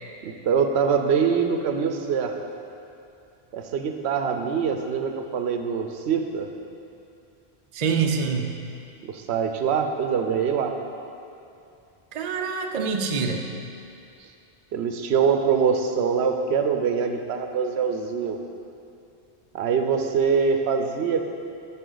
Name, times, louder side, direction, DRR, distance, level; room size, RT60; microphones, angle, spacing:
voice 1, 0.2-2.3 3.5-6.5 9.1-10.7 14.7-18.4 19.5-21.3, right 6 dB, 80° right, 6 dB, 0.9 m, -24 dB
voice 2, 7.7-8.6 12.1-13.5, right 5 dB, 50° right, 3 dB, 0.5 m, -26 dB
9.9 x 5.6 x 3.9 m, 2.6 s
omnidirectional pair, 1.1 m